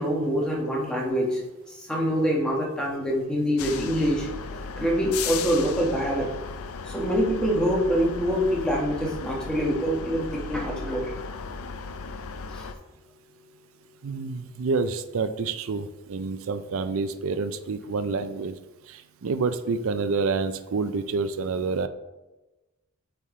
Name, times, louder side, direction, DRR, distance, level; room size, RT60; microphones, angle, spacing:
voice 1, 0.0-1.4 1.7-4.3 4.8-6.3 6.8-11.1 12.5-12.7, equal, 5° left, -3 dB, 1.2 m, -25 dB
sound 1, 3.6-12.7, left 5 dB, 75° left, 0.5 m, -36 dB
voice 2, 14.0-18.6 18.9-21.9, right 4 dB, 65° right, 11 dB, 0.4 m, -28 dB
8.6 x 3.5 x 3.6 m, 1.1 s
head